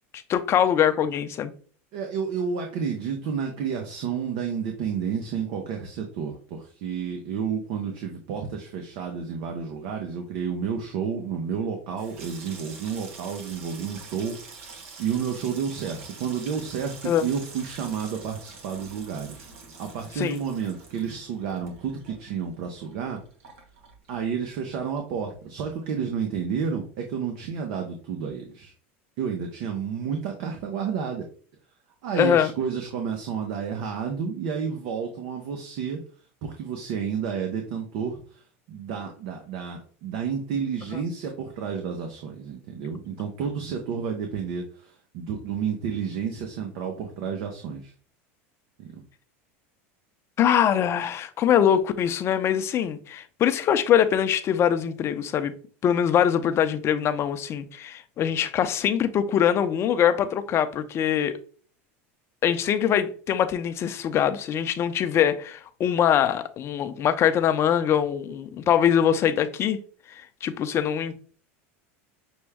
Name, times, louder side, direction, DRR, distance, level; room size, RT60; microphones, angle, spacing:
voice 1, 0.3-1.5 17.0-17.3 20.2-20.4 32.2-32.5 50.4-55.5 55.8-61.3 62.4-69.8 70.1-71.2, left 9 dB, 40° left, 0.6 m, -23 dB
voice 2, 1.9-19.5 19.8-23.2 24.1-28.7 29.2-31.2 32.0-36.0 36.4-47.9 48.8-49.0, right 7 dB, 65° right, 0.8 m, -31 dB
Water tap faucet / Sink (filling or washing), 11.8-24.7 25.0-25.6 25.9-26.2, right 4 dB, 80° right, 1.2 m, -46 dB
6.2 x 2.2 x 3.5 m
supercardioid pair, 110°, 7 cm